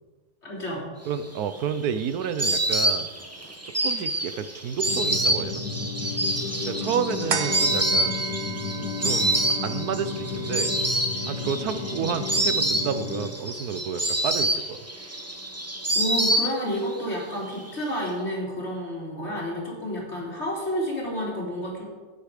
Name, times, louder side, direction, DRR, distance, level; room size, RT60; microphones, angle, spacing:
voice 1, 0.4-0.8 6.7-6.8 15.9-21.8, equal, 40° left, -5 dB, 3.9 m, -30 dB
voice 2, 1.1-3.1 3.6-5.6 6.7-8.2 9.0-10.8 11.2-14.8, right 7 dB, 70° right, 12 dB, 1.2 m, -30 dB
Insect, 1.2-16.9 17.2-18.0, right 1 dB, 10° right, 1.0 m, -27 dB
sound 1, 4.9-13.3, left 4 dB, 75° left, 2.0 m, -33 dB
sound 2, 7.3-14.1 14.5-14.6, right 6 dB, 45° right, 1.0 m, -37 dB
13.0 x 9.9 x 5.0 m, 1.4 s
omnidirectional pair, 1.7 m